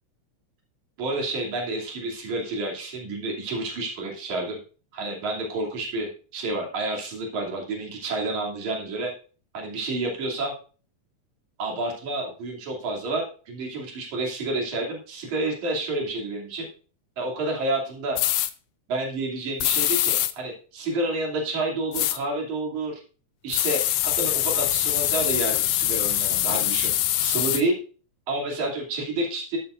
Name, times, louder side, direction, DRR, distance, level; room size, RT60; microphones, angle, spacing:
voice 1, 1.0-4.6 4.9-9.1 9.5-10.5 11.6-16.7 17.2-18.2 18.9-23.0 23.4-26.9 27.2-27.8 28.3-29.6, right 2 dB, 80° right, -1 dB, 4.3 m, -29 dB
sound 1, 18.2-18.5 19.6-20.3 21.9-22.2 23.5-27.6, left 13 dB, 75° left, 1.6 m, -24 dB
12.5 x 12.5 x 2.6 m, 0.38 s
omnidirectional pair, 3.3 m